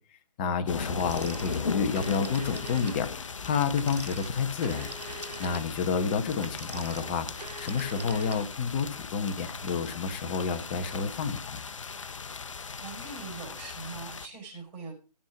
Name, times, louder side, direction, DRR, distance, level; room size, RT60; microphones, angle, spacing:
voice 1, 0.4-4.9 5.4-11.7, left 6 dB, 15° left, 9 dB, 1.0 m, -30 dB
sound 1, 0.7-14.3, left 5 dB, 50° left, 1.0 m, -38 dB
Telephone, 1.0-3.0 3.7-8.7, right 2 dB, 70° right, 2.5 m, -43 dB
voice 2, 12.8-14.9, right 4 dB, 20° right, 1 dB, 4.9 m, -42 dB
14.5 x 7.5 x 5.7 m, 0.34 s
figure-of-eight pair, 150°, 21 cm